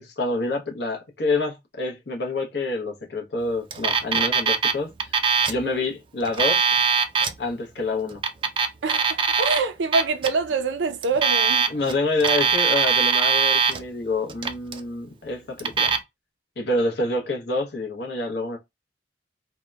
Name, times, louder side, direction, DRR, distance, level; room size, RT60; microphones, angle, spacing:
voice 1, 0.0-5.2 5.5-6.6 7.4-8.2 11.7-15.9 16.6-18.6, left 2 dB, 65° left, 0.8 m, -27 dB
Alarm, 3.7-4.7 5.0-5.6 6.2-7.3 8.1-9.6 9.9-10.3 11.0-11.9 12.2-13.8 14.3-14.8 15.6-16.0, right 6 dB, 30° right, 0.3 m, -21 dB
voice 2, 8.8-11.7, right 4 dB, 90° right, 0.5 m, -25 dB
2.7 x 2.1 x 2.2 m
head